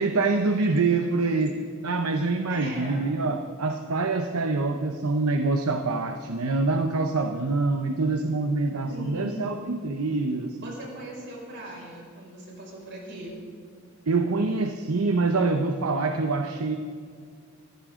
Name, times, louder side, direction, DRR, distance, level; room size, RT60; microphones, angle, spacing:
voice 1, 0.0-10.7 14.1-16.8, right 3 dB, 75° right, 6 dB, 0.8 m, -25 dB
voice 2, 2.5-3.0 8.9-9.5 10.6-13.4, right 1 dB, 55° right, -3 dB, 5.6 m, -39 dB
23.5 x 15.0 x 3.7 m, 2.1 s
head